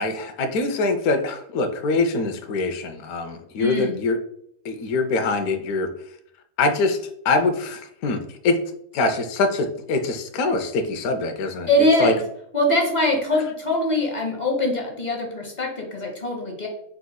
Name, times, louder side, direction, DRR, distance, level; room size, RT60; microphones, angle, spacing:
voice 1, 0.0-4.2 4.6-5.9 6.6-7.0 7.2-8.6 8.9-11.7 12.0-12.1, left 3 dB, 85° left, 7 dB, 1.1 m, -23 dB
voice 2, 3.6-4.0 11.7-12.2 12.5-16.7, left 1 dB, 40° left, 0 dB, 0.7 m, -22 dB
4.7 x 4.0 x 2.2 m, 0.72 s
omnidirectional pair, 1.5 m